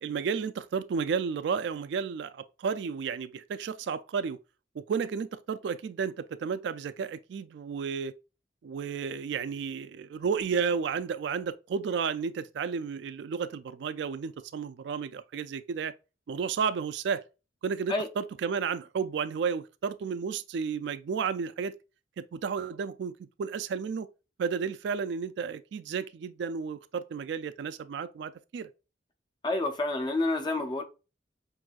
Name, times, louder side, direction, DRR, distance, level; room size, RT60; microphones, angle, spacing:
voice 1, 0.0-4.4 4.8-8.1 8.6-15.9 16.3-17.2 17.6-21.7 22.2-24.1 24.4-28.7, right 6 dB, 65° right, 0.3 m, -32 dB
voice 2, 29.4-30.8, left 2 dB, 25° left, 0.6 m, -28 dB
5.9 x 2.6 x 2.4 m
head